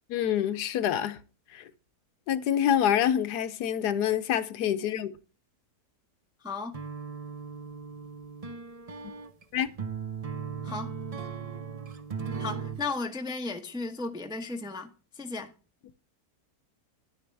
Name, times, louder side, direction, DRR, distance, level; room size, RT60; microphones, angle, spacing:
voice 1, 0.1-1.2 1.5-1.6 2.3-5.1 9.5-9.7, left 10 dB, 80° left, 1.3 m, -26 dB
voice 2, 6.4-6.8 10.6-11.0 12.4-15.5, left 3 dB, 5° right, 0.5 m, -35 dB
sound 1, 6.7-12.9, right 6 dB, 55° right, 0.4 m, -37 dB
10.0 x 10.0 x 3.3 m
omnidirectional pair, 1.7 m